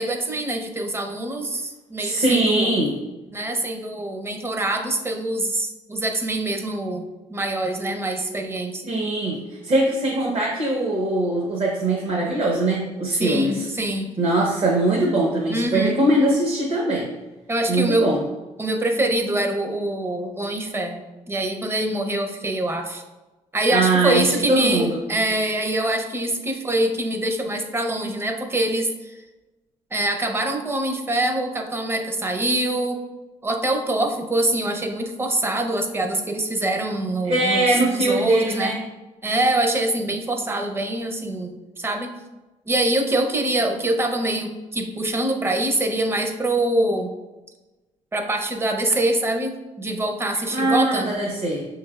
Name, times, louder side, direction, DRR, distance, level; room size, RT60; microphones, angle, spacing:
voice 1, 0.0-2.7 3.3-8.8 13.2-14.1 15.5-16.0 17.5-18.2 18.6-21.0 21.3-23.0 23.5-29.2 29.9-33.0 33.4-38.8 39.2-42.2 42.7-47.1 48.1-51.1, right 1 dB, 20° right, 4 dB, 0.6 m, -24 dB
voice 2, 2.0-2.9 8.9-13.7 14.2-17.1 17.7-18.2 23.7-25.0 37.3-38.8 50.5-51.7, right 2 dB, 45° right, -3 dB, 0.8 m, -22 dB
6.0 x 3.2 x 2.3 m, 1.1 s
cardioid pair, 85°, 13 cm